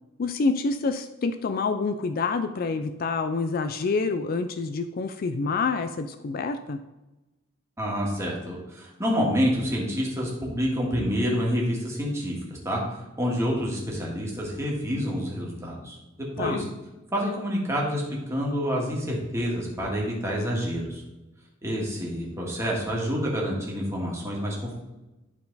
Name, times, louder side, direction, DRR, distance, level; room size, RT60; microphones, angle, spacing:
voice 1, 0.2-6.8 16.4-16.7, left 4 dB, 45° left, 8 dB, 0.4 m, -27 dB
voice 2, 7.8-12.4 12.6-12.8 13.2-16.6 17.1-21.0 21.6-24.7, equal, 15° right, -4 dB, 1.9 m, -28 dB
10.5 x 4.5 x 4.0 m, 1.0 s
head